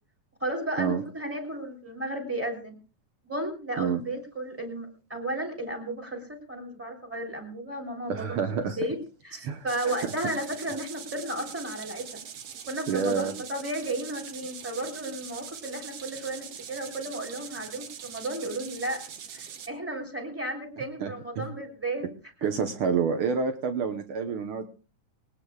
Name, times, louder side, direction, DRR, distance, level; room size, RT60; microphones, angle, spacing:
voice 1, 0.4-2.7 3.2-8.4 8.8-9.0 9.2-12.2 12.7-19.0 19.3-22.1, right 1 dB, 5° right, 2 dB, 2.8 m, -34 dB
voice 2, 8.1-8.8 9.4-10.0 12.9-13.3 21.0-21.5 22.4-24.7, right 6 dB, 80° right, 7 dB, 1.2 m, -28 dB
sound 1, 9.7-19.7, right 8 dB, 60° right, 1.6 m, -42 dB
20.5 x 19.0 x 2.3 m, 0.35 s
omnidirectional pair, 3.8 m